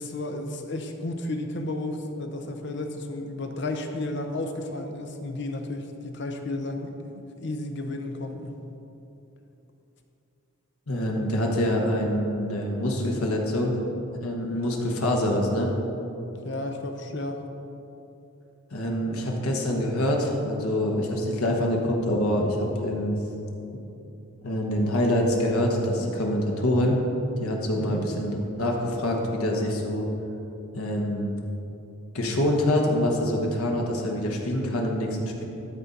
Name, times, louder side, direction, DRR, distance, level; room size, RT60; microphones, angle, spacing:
voice 1, 0.0-6.9 7.4-8.6 16.4-17.4 27.8-28.1, left 2 dB, 55° left, 5 dB, 0.7 m, -32 dB
voice 2, 10.9-13.8 14.2-15.7 18.7-23.2 24.4-27.0 27.4-30.1 30.7-31.3 32.1-35.4, left 1 dB, 85° left, 0 dB, 1.3 m, -25 dB
12.5 x 4.3 x 5.2 m, 2.9 s
head